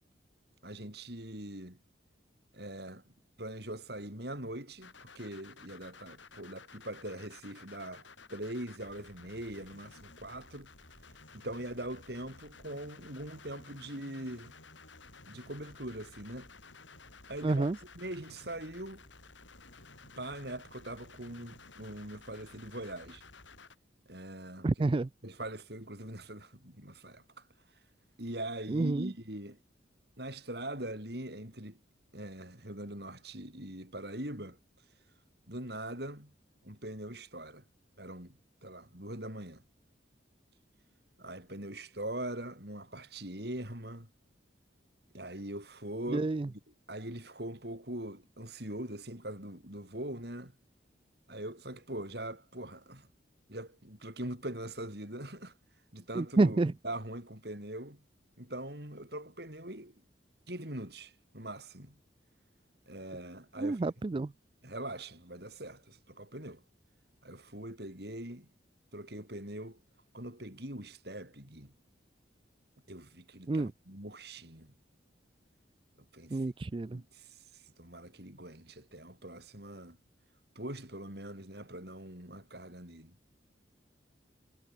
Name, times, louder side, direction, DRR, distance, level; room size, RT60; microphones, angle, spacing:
voice 1, 0.6-1.8 2.5-3.0 3.4-10.7 11.3-14.5 15.3-16.5 17.3-17.7 17.9-19.1 20.2-23.2 24.1-24.7 25.2-27.4 28.2-29.6 30.2-31.8 32.1-34.6 35.5-36.3 36.6-37.6 38.0-39.6 41.2-44.1 45.1-46.6 46.9-50.5 51.3-53.1 53.5-55.5 55.9-56.6 56.8-58.0 58.4-59.9 60.5-61.9 62.9-64.3 64.6-66.6 67.2-68.5 68.9-69.8 70.1-71.7 72.9-74.7 76.1-76.4 76.9-80.0 80.5-83.1, right 1 dB, 55° right, 6.7 m, -42 dB
sound 1, 4.8-23.8, left 4 dB, 85° left, 6.7 m, -54 dB
voice 2, 17.4-17.8 24.6-25.1 28.7-29.1 46.1-46.5 56.1-56.7 63.6-64.3 73.5-73.7 76.3-77.0, right 2 dB, 25° right, 0.3 m, -29 dB
head